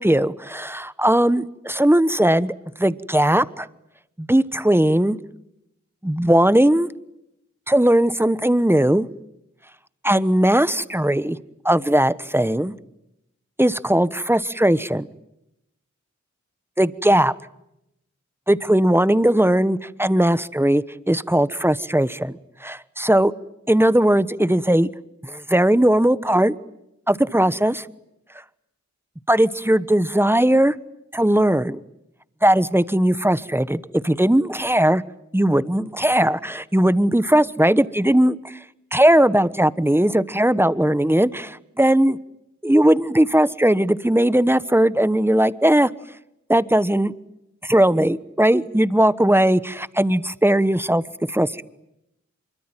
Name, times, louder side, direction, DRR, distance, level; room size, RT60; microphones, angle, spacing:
voice 1, 0.0-3.7 4.2-5.2 6.0-6.9 7.7-9.1 10.0-11.4 11.6-12.7 13.6-15.1 16.8-17.3 18.5-23.3 23.7-24.9 25.2-26.6 27.1-27.9 29.3-30.7 31.1-31.8 32.4-35.0 35.3-38.6 38.9-42.2 42.6-45.9 46.5-47.1 47.6-51.0 51.3-51.6, right 1 dB, 10° right, 16 dB, 1.1 m, -18 dB
25.5 x 23.5 x 9.1 m, 0.84 s
wide cardioid pair, 40°, 29 cm